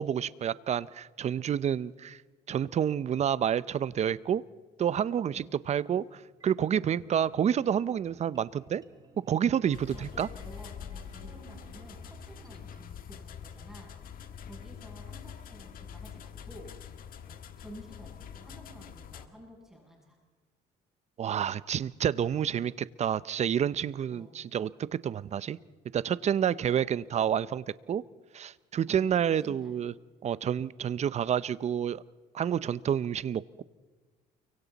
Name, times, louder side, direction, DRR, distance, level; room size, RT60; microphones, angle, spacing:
voice 1, 0.0-2.2 2.5-4.4 4.8-8.8 9.3-10.3 21.2-25.6 25.9-28.0 28.3-29.9 30.2-32.0 32.3-33.6, right 9 dB, 40° right, 18 dB, 0.6 m, -29 dB
sound 1, 5.7-12.8, right 3 dB, 25° right, 1.9 m, -58 dB
sound 2, 9.7-19.3, left 8 dB, 55° left, 1.5 m, -45 dB
voice 2, 9.9-13.9 14.4-16.7 17.3-20.2 24.1-24.4 26.4-26.8 28.9-29.1 29.4-29.8, equal, 5° right, -2 dB, 7.8 m, -51 dB
29.5 x 24.0 x 4.1 m, 1.4 s
cardioid pair, 110°, 17 cm